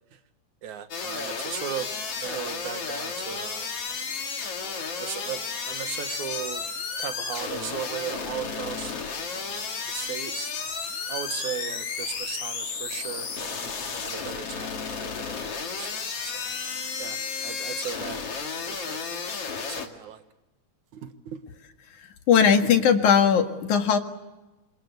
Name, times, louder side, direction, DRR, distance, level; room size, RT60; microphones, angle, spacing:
voice 1, 0.6-3.7 4.6-6.6 7.0-9.0 9.3-10.5 11.1-16.5 17.0-18.2 18.7-19.0 19.6-20.2 20.9-21.4, right 9 dB, 80° right, 9 dB, 2.9 m, -37 dB
sound 1, 0.9-19.9, left 5 dB, 55° left, 3.2 m, -33 dB
voice 2, 22.3-24.0, left 7 dB, 85° left, 5 dB, 3.3 m, -19 dB
27.0 x 26.0 x 8.1 m, 1.1 s
omnidirectional pair, 3.3 m